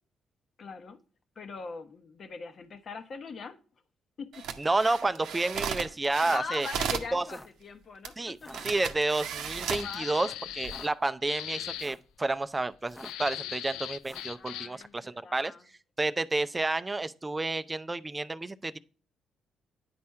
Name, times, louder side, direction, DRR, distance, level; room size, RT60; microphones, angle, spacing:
voice 1, 0.6-1.0 1.4-3.6 4.2-4.4 6.3-8.5 9.4-10.4 14.3-15.7, left 4 dB, 55° left, 1.0 m, -41 dB
sound 1, 4.3-7.1 8.0-8.1 8.5-9.9 10.5-10.7, right 7 dB, 80° right, 0.7 m, -35 dB
voice 2, 4.6-6.7 7.1-7.2 8.2-8.4 8.6-10.3 10.5-15.5 16.0-18.8, right 2 dB, 25° right, 0.4 m, -30 dB
sound 2, 6.1-6.4 7.1-7.6 8.3-8.6 9.5-9.9 10.5-10.9 11.6-12.1 12.8-13.3 14.0-14.4, left 1 dB, 10° left, 0.7 m, -48 dB
sound 3, 9.7-10.9 11.3-11.9 13.0-14.8, left 12 dB, 85° left, 0.3 m, -39 dB
9.5 x 4.2 x 4.6 m
supercardioid pair, 55°, 0 cm